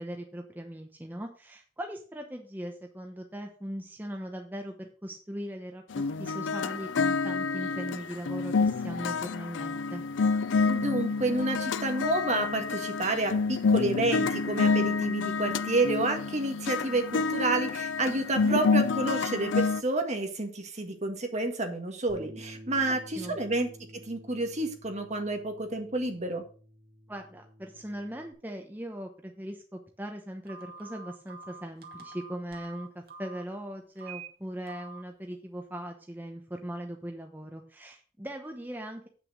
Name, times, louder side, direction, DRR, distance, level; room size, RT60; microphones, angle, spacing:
voice 1, 0.0-10.0 18.4-18.6 22.9-23.4 27.1-39.1, equal, 10° right, 3 dB, 0.9 m, -39 dB
sound 1, 5.9-19.8, left 4 dB, 75° left, 0.5 m, -28 dB
voice 2, 10.7-23.7 24.1-26.4, right 2 dB, 35° right, 5 dB, 1.7 m, -29 dB
Bass guitar, 22.1-28.3, equal, 25° left, 5.3 m, -51 dB
Telephone, 30.5-33.4 34.0-34.3 34.7-35.0, right 4 dB, 55° right, 2.2 m, -46 dB
8.5 x 6.2 x 6.2 m, 0.42 s
head